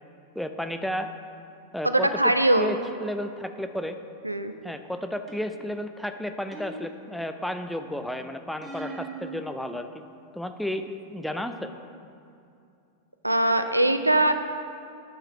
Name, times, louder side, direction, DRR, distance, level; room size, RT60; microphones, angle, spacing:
voice 1, 0.4-1.1 1.7-4.0 4.6-10.0 10.3-11.7, equal, ahead, 7 dB, 0.4 m, -32 dB
voice 2, 1.8-2.7 4.2-4.5 13.2-14.3, right 1 dB, 85° right, 8 dB, 0.4 m, -21 dB
sound 1, 5.3-5.8 6.5-7.4 8.6-9.4, right 3 dB, 15° right, 1.2 m, -40 dB
8.9 x 4.9 x 6.5 m, 2.5 s
figure-of-eight pair, 90°, 0 cm